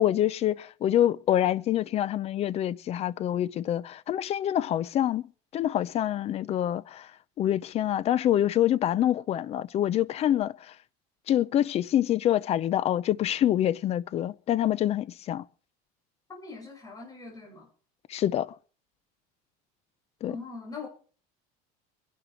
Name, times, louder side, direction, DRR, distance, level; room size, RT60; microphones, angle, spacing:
voice 1, 0.0-5.2 5.5-7.1 7.4-10.7 11.3-15.5 18.1-18.5 20.2-20.4, left 11 dB, 35° left, 0.7 m, -26 dB
voice 2, 16.3-17.7 20.3-20.9, left 4 dB, 20° left, 7.1 m, -41 dB
22.0 x 11.0 x 4.6 m
cardioid pair, 150°, 19 cm